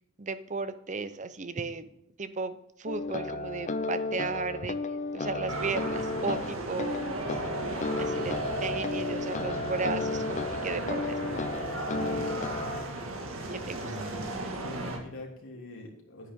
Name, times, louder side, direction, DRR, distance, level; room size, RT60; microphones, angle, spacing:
voice 1, 0.2-1.9 2.2-4.8 5.1-7.0 8.0-11.7 13.5-13.8, right 4 dB, 35° right, 12 dB, 0.7 m, -35 dB
sound 1, 2.9-12.9, left 3 dB, 35° left, 0.5 m, -33 dB
sound 2, 5.5-15.0, right 2 dB, 80° right, 1.9 m, -36 dB
voice 2, 13.7-16.3, left 1 dB, 75° left, -1 dB, 3.1 m, -44 dB
9.8 x 9.7 x 3.7 m, 0.81 s
head